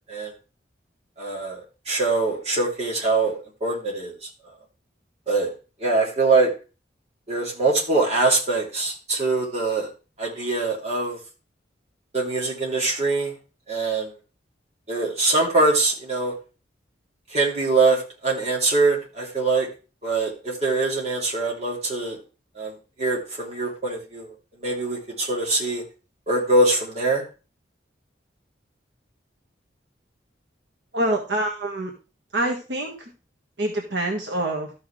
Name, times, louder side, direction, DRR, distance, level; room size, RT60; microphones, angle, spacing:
voice 1, 1.2-4.3 5.3-5.5 5.8-6.5 7.3-9.9 10.2-11.2 12.1-13.3 13.7-14.1 14.9-16.3 17.3-19.7 20.0-22.2 22.5-24.3 24.6-25.8 26.3-27.2, right 3 dB, 35° right, -3 dB, 2.9 m, -23 dB
voice 2, 30.9-31.9 32.3-33.1 33.6-34.7, right 1 dB, 70° right, 1 dB, 1.5 m, -26 dB
13.5 x 5.9 x 3.3 m, 0.32 s
head